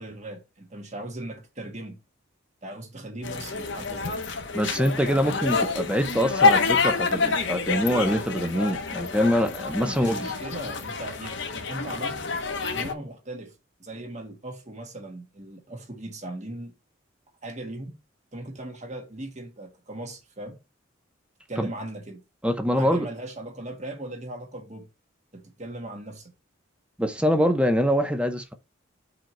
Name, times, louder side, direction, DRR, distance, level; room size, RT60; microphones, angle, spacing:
voice 1, 0.0-2.0 2.6-4.2 9.9-12.4 12.7-13.5 13.8-16.7 17.4-18.0 18.3-20.6 21.5-22.2 22.8-24.9 25.3-26.3, right 1 dB, 35° right, 1.6 m, -38 dB
sound 1, 3.2-12.9, left 4 dB, 60° left, 1.0 m, -27 dB
voice 2, 4.5-10.3 21.6-21.7 22.4-23.1 27.0-28.5, equal, 5° right, 0.7 m, -24 dB
5.0 x 4.6 x 4.4 m
head